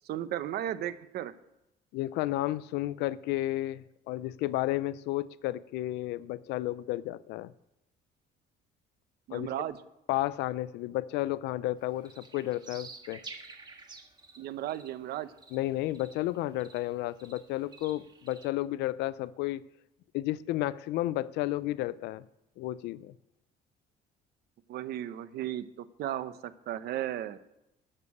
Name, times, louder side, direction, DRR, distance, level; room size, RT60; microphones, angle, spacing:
voice 1, 0.0-1.3 9.3-9.8 14.4-15.3 21.0-21.1 24.7-27.4, right 12 dB, 70° right, 0.9 m, -35 dB
voice 2, 1.9-7.5 9.3-9.5 10.1-13.2 15.5-19.6 20.1-22.2 22.6-23.1, left 16 dB, 85° left, 0.5 m, -32 dB
sound 1, 11.8-18.5, right 4 dB, 25° right, 1.6 m, -50 dB
13.5 x 6.8 x 8.4 m
cardioid pair, 110°, 17 cm